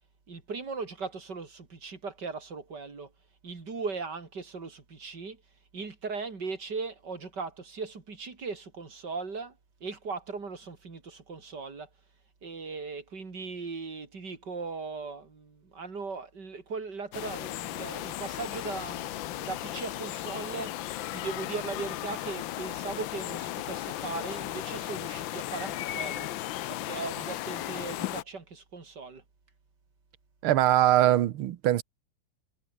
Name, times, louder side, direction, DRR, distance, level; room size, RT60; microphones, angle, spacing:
voice 1, 0.3-3.1 3.4-5.4 5.7-9.6 9.8-11.9 12.4-20.8 21.1-26.3 26.7-29.2, right 4 dB, 55° right, 4.1 m, -38 dB
sound 1, 17.1-28.2, left 14 dB, 70° left, 1.4 m, -36 dB
voice 2, 30.4-31.8, right 13 dB, 85° right, 1.8 m, -22 dB
omnidirectional pair, 2.3 m